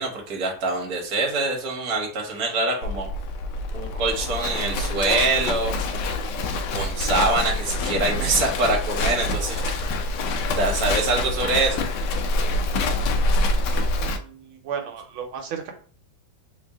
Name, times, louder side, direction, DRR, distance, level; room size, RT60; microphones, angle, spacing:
voice 1, 0.0-3.1 3.7-5.7 6.7-9.6 10.6-11.8, right 3 dB, 50° right, 0 dB, 1.5 m, -24 dB
Livestock farm animals working animals, 2.8-14.2, left 2 dB, 75° left, 1.1 m, -26 dB
voice 2, 13.8-15.7, right 7 dB, 85° right, 4 dB, 1.6 m, -34 dB
3.5 x 2.7 x 3.5 m, 0.42 s
omnidirectional pair, 2.3 m